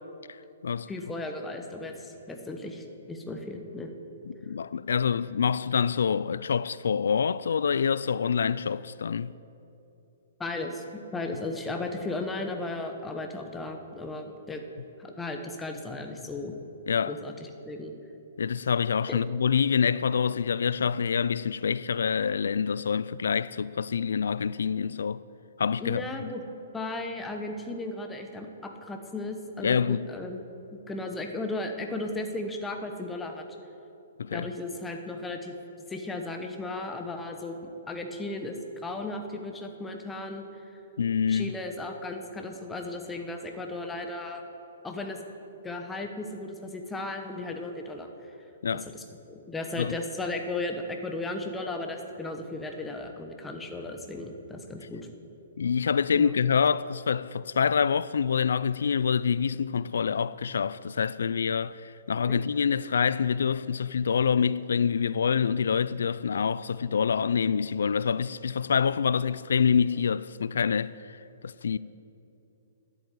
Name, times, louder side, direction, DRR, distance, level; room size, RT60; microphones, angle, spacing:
voice 1, 0.9-3.9 10.4-10.8 11.1-14.6 15.0-16.5 17.1-17.9 19.1-19.2 25.8-26.4 26.7-30.4 30.7-33.4 34.3-35.5 35.9-38.6 38.8-40.5 41.3-44.4 44.8-45.2 45.6-48.3 48.7-55.1 56.1-56.3 62.3-62.4, left 2 dB, 10° left, 1.0 m, -35 dB
voice 2, 4.3-9.3 16.9-17.1 18.4-25.2 25.6-26.3 29.6-30.1 34.2-34.5 41.0-41.5 48.6-48.9 49.8-49.9 55.6-71.8, left 6 dB, 80° left, 0.3 m, -26 dB
10.5 x 8.0 x 9.2 m
hypercardioid pair, 155°, 0 cm